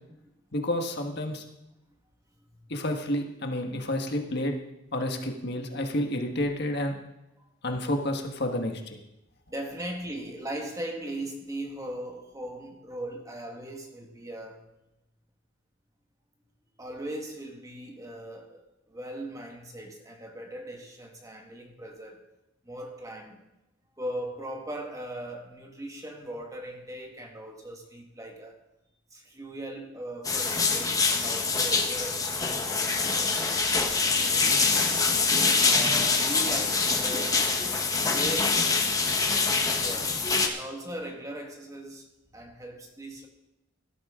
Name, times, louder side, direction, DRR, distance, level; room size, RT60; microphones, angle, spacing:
voice 1, 0.5-1.4 2.7-4.5 4.9-6.9 7.6-8.8, left 1 dB, 55° left, 3 dB, 1.5 m, -30 dB
voice 2, 9.5-14.6 16.8-22.2 22.6-23.4 24.0-28.6 29.1-33.7 34.2-34.6 34.9-35.3 35.6-37.7 38.0-38.6 39.7-42.0 42.3-43.3, right 1 dB, 15° right, 2 dB, 1.7 m, -39 dB
sound 1, 30.2-40.5, left 4 dB, 15° left, 1.1 m, -25 dB
17.0 x 12.5 x 3.8 m, 0.88 s
head